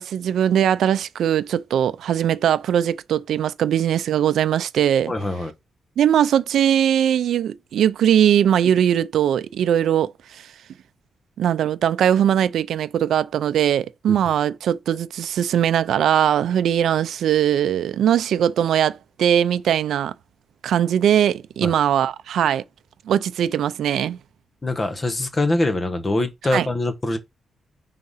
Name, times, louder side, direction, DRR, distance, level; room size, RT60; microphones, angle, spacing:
voice 1, 0.0-5.1 6.0-10.4 11.4-20.1 20.6-22.6 23.1-24.2 26.5-26.7, right 9 dB, 80° right, 0.4 m, -20 dB
voice 2, 5.1-5.5 14.1-14.2 21.6-21.7 24.6-27.2, left 2 dB, 25° left, 1.0 m, -23 dB
4.7 x 3.8 x 5.6 m
wide cardioid pair, 140°, 0 cm